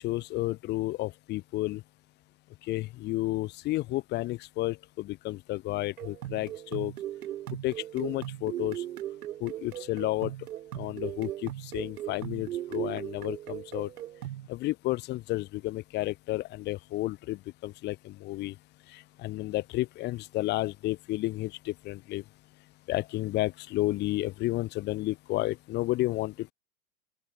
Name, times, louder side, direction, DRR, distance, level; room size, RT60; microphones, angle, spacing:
voice 1, 0.0-1.8 2.7-6.9 7.6-8.8 9.4-10.3 10.8-13.9 14.5-18.5 18.9-22.2 22.9-26.5, left 18 dB, 20° left, 1.8 m, -31 dB
sound 1, 6.0-14.5, right 13 dB, 70° right, 3.2 m, -38 dB
open air
supercardioid pair, 170°, 47 cm